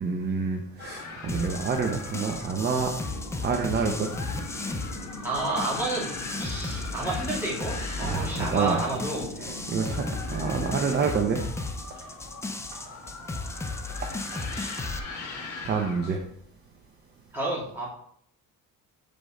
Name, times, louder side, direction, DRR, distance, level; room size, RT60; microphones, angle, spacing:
voice 1, 0.0-2.9 3.4-4.1 8.0-8.8 9.4-11.5 14.0-14.1 15.6-16.2, right 5 dB, 30° right, 3 dB, 0.7 m, -28 dB
sound 1, 0.8-16.1, left 3 dB, 60° left, 1.3 m, -41 dB
sound 2, 1.3-15.0, left 2 dB, 10° left, 0.3 m, -35 dB
sound 3, 3.0-10.9, left 1 dB, 80° left, 1.8 m, -42 dB
voice 2, 5.2-6.1 6.4-9.3 17.3-17.9, right 2 dB, 5° right, -7 dB, 2.4 m, -30 dB
6.4 x 5.2 x 3.8 m, 0.65 s
cardioid pair, 165°, 34 cm